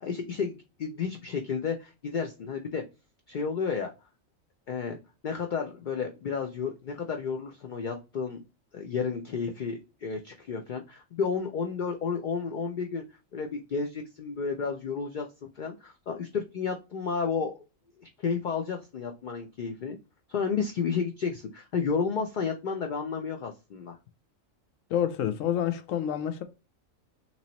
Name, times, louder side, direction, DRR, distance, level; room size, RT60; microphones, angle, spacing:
voice 1, 0.0-2.8 3.3-3.9 4.7-5.0 5.2-8.4 8.7-13.0 13.3-17.6 18.0-20.0 20.3-24.0, left 5 dB, 55° left, 0.5 m, -32 dB
voice 2, 24.9-26.4, left 10 dB, 85° left, 1.0 m, -28 dB
4.0 x 3.1 x 2.8 m
omnidirectional pair, 1.4 m